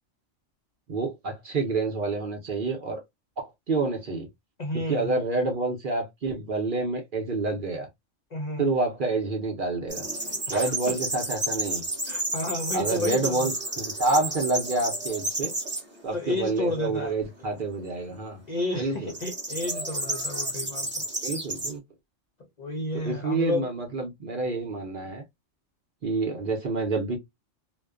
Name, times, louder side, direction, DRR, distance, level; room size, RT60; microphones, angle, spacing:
voice 1, 0.9-3.0 3.4-4.3 4.9-7.9 8.6-10.0 10.5-11.8 12.7-15.5 16.0-18.4 18.7-19.1 21.2-21.8 22.9-25.2 26.0-27.2, right 3 dB, 50° right, 0.8 m, -28 dB
voice 2, 4.6-5.1 8.3-8.7 10.5-10.7 12.1-13.5 16.1-17.1 18.5-21.1 22.6-23.7, left 2 dB, 50° left, 0.5 m, -31 dB
sound 1, 9.9-15.8 16.4-16.9 19.1-21.7, right 1 dB, 15° right, 0.5 m, -31 dB
2.5 x 2.2 x 2.3 m
omnidirectional pair, 1.3 m